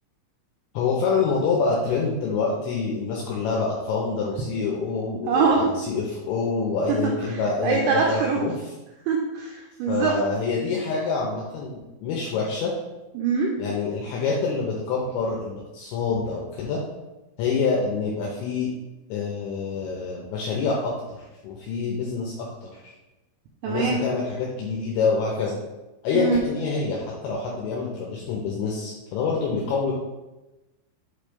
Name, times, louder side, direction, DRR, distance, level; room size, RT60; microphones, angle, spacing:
voice 1, 0.7-8.5 9.9-12.7 13.6-16.8 17.4-18.7 19.1-22.9 23.7-25.6 26.0-29.9, left 4 dB, 80° left, -2 dB, 2.8 m, -26 dB
voice 2, 5.3-5.7 7.3-8.5 9.1-10.2 13.2-13.5 23.6-24.0 26.1-26.5, right 5 dB, 85° right, -1 dB, 2.5 m, -23 dB
7.9 x 3.3 x 5.0 m, 1.1 s
omnidirectional pair, 5.9 m